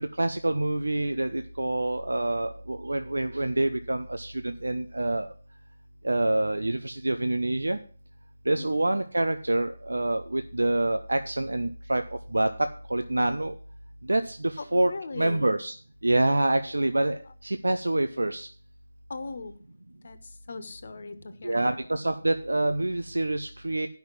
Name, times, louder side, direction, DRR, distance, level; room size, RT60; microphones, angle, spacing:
voice 1, 0.0-5.3 6.0-7.8 8.5-12.0 12.3-13.5 14.1-15.8 16.0-18.5 21.4-23.9, right 1 dB, 90° right, 8 dB, 0.7 m, -26 dB
voice 2, 14.6-15.4 19.1-19.6 20.0-21.8, left 3 dB, 55° left, 11 dB, 1.4 m, -39 dB
10.5 x 5.8 x 7.4 m, 0.42 s
figure-of-eight pair, 160°, 0 cm